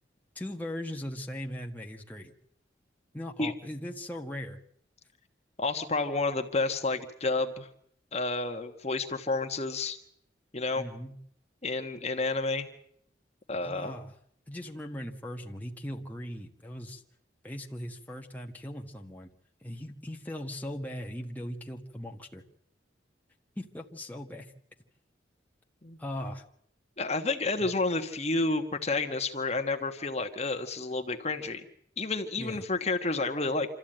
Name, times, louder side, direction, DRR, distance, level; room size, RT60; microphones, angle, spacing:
voice 1, 0.3-2.3 3.1-4.6 10.7-11.2 13.6-14.1 14.5-17.0 17.4-19.3 19.6-22.4 23.5-24.5 26.0-26.4 27.6-27.7 32.4-32.6, left 1 dB, 10° left, 0 dB, 1.6 m, -39 dB
voice 2, 5.6-7.7 8.1-10.0 10.5-10.8 11.6-12.7 13.5-13.9 25.8-26.0 27.0-31.6 32.0-33.7, left 3 dB, 35° left, 5 dB, 1.4 m, -30 dB
26.5 x 14.0 x 8.9 m, 0.68 s
head